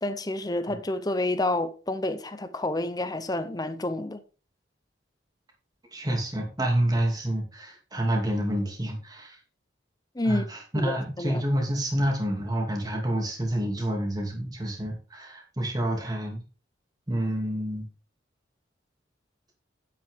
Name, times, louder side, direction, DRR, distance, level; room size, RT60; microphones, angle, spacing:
voice 1, 0.0-4.2 10.2-10.4 10.7-11.4, left 2 dB, 20° left, 0.7 m, -29 dB
voice 2, 5.9-9.4 10.2-16.4 17.1-17.9, right 1 dB, 20° right, 2.6 m, -28 dB
9.5 x 8.0 x 3.6 m
head